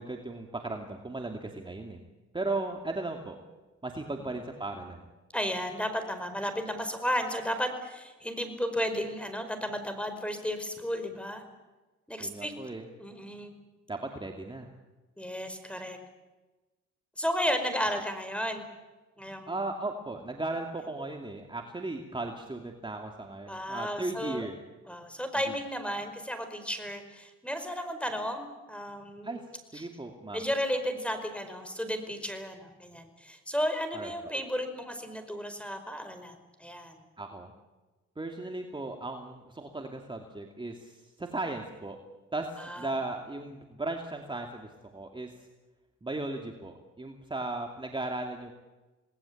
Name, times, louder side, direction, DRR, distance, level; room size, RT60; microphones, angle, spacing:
voice 1, 0.0-2.0 2.3-3.4 3.8-5.1 12.2-12.9 13.9-14.7 19.5-24.6 25.5-25.6 29.2-29.4 29.7-30.5 33.9-34.3 37.2-37.5 38.2-42.0 42.3-45.5 46.0-48.5, right 2 dB, 15° right, 3 dB, 2.7 m, -36 dB
voice 2, 5.3-11.4 12.1-12.5 13.0-13.5 15.2-16.0 17.2-18.6 19.2-19.5 23.5-24.5 24.9-29.4 29.7-29.9 30.3-37.0 42.6-42.9, equal, 5° left, 8 dB, 5.0 m, -33 dB
28.0 x 19.5 x 8.7 m, 1.2 s
cardioid pair, 90°, 30 cm